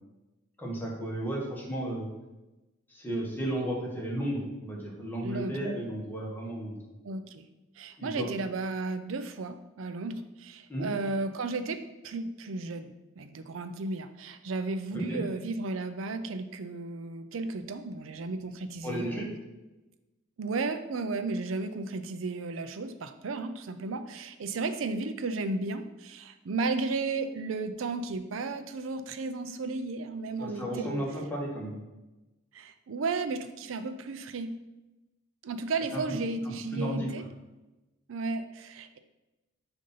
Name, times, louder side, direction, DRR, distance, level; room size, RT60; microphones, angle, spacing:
voice 1, 0.6-2.1 2.9-6.7 8.0-8.3 10.7-10.9 14.9-15.2 18.8-19.3 30.4-31.8 35.9-36.2 36.4-37.1, right 1 dB, 10° left, -3 dB, 1.3 m, -33 dB
voice 2, 5.2-5.5 7.0-7.5 7.8-19.3 20.4-30.9 32.5-34.5 35.4-37.2 38.1-39.0, right 3 dB, 85° right, 10 dB, 0.5 m, -34 dB
6.4 x 2.7 x 5.5 m, 1.0 s
head